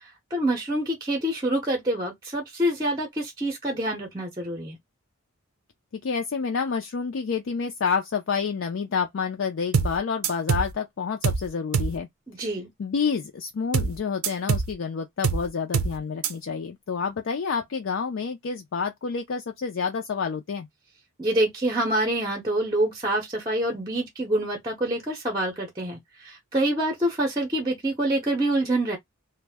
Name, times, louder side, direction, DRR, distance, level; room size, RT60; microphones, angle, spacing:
voice 1, 0.3-4.8 12.3-12.7 21.2-29.0, right 1 dB, 15° right, 0.6 m, -26 dB
voice 2, 6.0-12.1 12.8-20.7, left 5 dB, 60° left, 0.4 m, -28 dB
sound 1, 9.7-10.0 10.2-10.7 11.2-11.5 11.7-12.0 13.7-14.0 14.2-14.7 15.2-15.5 15.7-16.0 16.2-16.3, right 5 dB, 70° right, 0.5 m, -24 dB
2.5 x 2.1 x 3.3 m
head